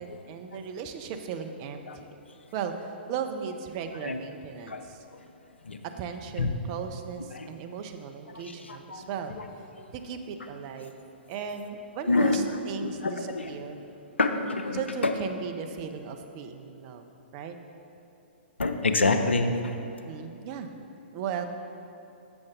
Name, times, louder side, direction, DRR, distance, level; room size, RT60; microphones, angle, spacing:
voice 1, 0.0-2.1 2.5-5.0 5.8-9.4 9.9-10.9 11.3-13.8 14.7-17.1 17.3-17.6 20.0-20.7 21.1-21.5, right 7 dB, 35° right, 6 dB, 0.5 m, -36 dB
voice 2, 8.7-9.1 12.1-12.4 12.8-13.5 14.2-15.1 18.6-19.6, left 3 dB, 80° left, 6 dB, 0.5 m, -26 dB
6.9 x 6.3 x 3.6 m, 2.8 s
figure-of-eight pair, 120°, 6 cm